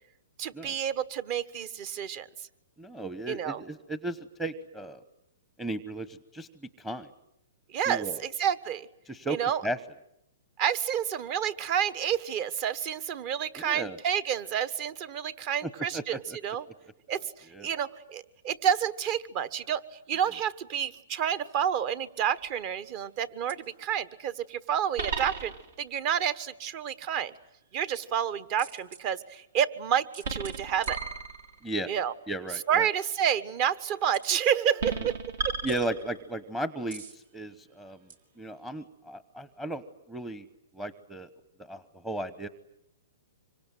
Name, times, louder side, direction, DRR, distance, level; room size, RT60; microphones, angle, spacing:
voice 1, 0.4-2.3 3.3-3.6 7.7-8.9 9.3-9.6 10.6-16.6 17.1-19.8 20.1-25.5 25.8-27.3 27.7-31.0 31.9-32.1 32.7-35.2 35.4-35.6, right 9 dB, 35° right, 16 dB, 1.3 m, -29 dB
voice 2, 2.8-5.0 5.6-7.1 7.9-8.2 9.1-9.4 9.6-9.8 13.6-14.0 15.6-16.4 17.5-17.7 31.6-31.9 32.3-32.9 35.6-38.0 38.4-40.5 40.7-41.3 41.7-42.5, right 1 dB, 5° right, 13 dB, 1.0 m, -35 dB
sound 1, 22.4-22.8 23.5-23.6 25.0-25.9 28.6-29.0 30.1-31.7 34.1-34.4 34.8-36.4 36.9-37.2 38.1-38.2, right 4 dB, 70° right, 3.5 m, -35 dB
26.0 x 24.5 x 9.3 m, 0.79 s
hypercardioid pair, 145°, 0 cm